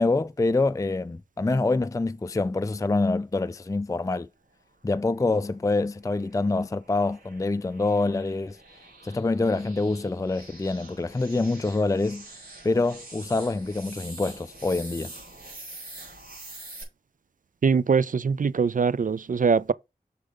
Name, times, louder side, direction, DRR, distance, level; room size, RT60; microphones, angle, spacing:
voice 1, 0.0-4.3 4.8-8.6 9.0-12.2 12.6-15.1, left 3 dB, 20° left, 0.4 m, -26 dB
sound 1, 5.3-16.8, right 2 dB, 85° right, 4.9 m, -46 dB
voice 2, 17.6-19.7, right 5 dB, 60° right, 0.4 m, -22 dB
6.5 x 5.0 x 5.3 m
wide cardioid pair, 60°, 16 cm